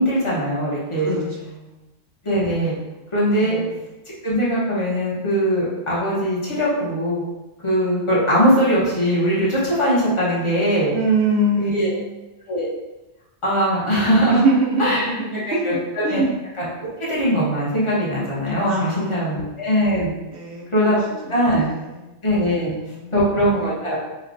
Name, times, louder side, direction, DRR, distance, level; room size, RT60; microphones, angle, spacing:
voice 1, 0.0-1.2 2.2-2.8 3.1-3.6 4.2-7.2 7.6-10.9 11.6-12.0 12.5-12.7 13.4-14.4 14.8-15.0 15.5-16.2 16.6-16.7 17.0-20.1 20.7-21.7 22.2-22.7 23.1-24.0, equal, 30° left, -7 dB, 0.9 m, -20 dB
voice 2, 1.0-1.8 3.4-3.7 10.9-12.0 14.3-16.3 18.7-19.4 20.3-21.0 21.2-22.1 22.5-23.2, right 2 dB, 70° right, -2 dB, 1.0 m, -24 dB
3.1 x 2.3 x 2.5 m, 1.0 s
omnidirectional pair, 1.2 m